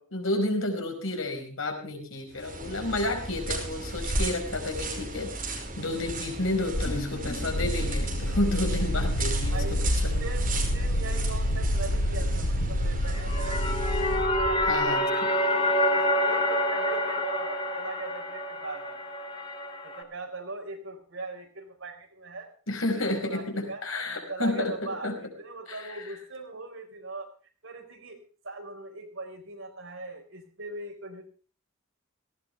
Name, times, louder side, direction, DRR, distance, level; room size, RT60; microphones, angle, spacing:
voice 1, 0.1-9.6 10.0-10.1 14.7-15.0 22.7-25.2 25.7-26.0, left 2 dB, 70° left, 4 dB, 5.0 m, -31 dB
sound 1, 2.3-14.2, right 2 dB, 40° right, 5.6 m, -36 dB
sound 2, 6.7-14.9, equal, 55° left, 1.9 m, -28 dB
voice 2, 9.5-9.8 10.2-13.6 14.1-19.0 19.8-22.5 22.9-27.3 27.6-28.2 28.4-31.2, right 3 dB, 65° right, 3 dB, 4.9 m, -40 dB
sound 3, 13.1-20.0, left 1 dB, 25° left, 2.4 m, -27 dB
18.5 x 16.5 x 3.4 m, 0.38 s
head